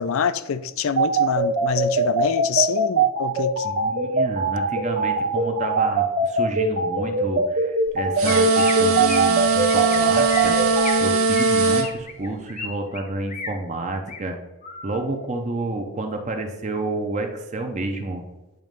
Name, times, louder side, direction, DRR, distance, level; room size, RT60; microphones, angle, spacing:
voice 1, 0.0-3.7, left 7 dB, 65° left, 0.4 m, -25 dB
sound 1, 1.0-10.9, right 3 dB, 90° right, 1.4 m, -21 dB
voice 2, 3.6-10.6 11.0-14.4 14.8-18.2, right 2 dB, 30° right, 0.6 m, -30 dB
Chirp tweet, 7.9-8.0 8.3-8.7 9.1-9.3 9.6-10.0 10.3-11.0 11.3-12.7 12.9-13.5 13.9-14.2 14.6-15.0, left 4 dB, 35° left, 0.8 m, -33 dB
sound 2, 8.2-11.9, right 4 dB, 70° right, 1.1 m, -20 dB
9.0 x 3.1 x 5.2 m
head